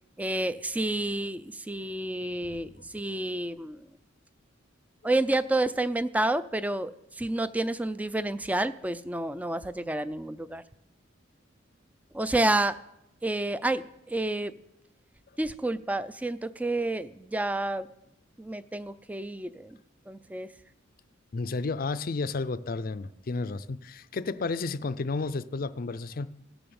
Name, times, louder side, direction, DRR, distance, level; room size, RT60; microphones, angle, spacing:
voice 1, 0.2-4.0 5.0-10.6 12.1-12.8 13.2-14.5 15.4-17.9 18.4-19.8 20.1-20.5, right 2 dB, 10° right, 15 dB, 0.4 m, -29 dB
voice 2, 21.3-26.3, left 3 dB, 45° left, 15 dB, 0.5 m, -32 dB
17.0 x 7.1 x 7.0 m, 0.87 s
head